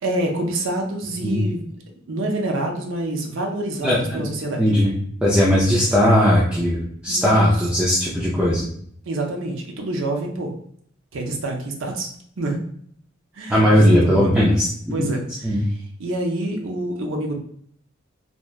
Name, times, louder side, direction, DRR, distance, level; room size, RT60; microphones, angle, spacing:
voice 1, 0.0-1.6 2.1-4.7 7.1-7.9 9.1-10.5 11.1-12.1 12.4-12.6 13.3-14.4 14.9-17.4, right 1 dB, 70° right, 1 dB, 0.5 m, -27 dB
voice 2, 3.8-4.2 4.6-4.9 5.2-6.8 7.0-8.6 13.5-15.1 15.4-15.6, equal, 5° right, -6 dB, 0.4 m, -18 dB
2.8 x 2.1 x 2.3 m, 0.63 s
head